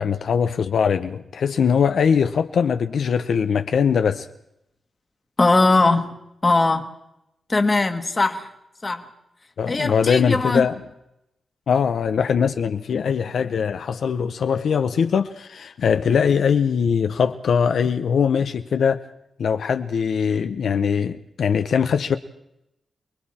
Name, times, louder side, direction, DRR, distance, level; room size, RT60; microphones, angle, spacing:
voice 1, 0.0-4.3 9.6-10.8 11.7-19.0 19.4-22.2, left 6 dB, 65° left, 0.8 m, -21 dB
voice 2, 5.4-6.1 6.4-6.9 7.5-8.5 8.8-9.0 9.7-10.6, left 3 dB, 20° left, 1.6 m, -19 dB
29.0 x 21.5 x 4.3 m
wide cardioid pair, 175°, 0 cm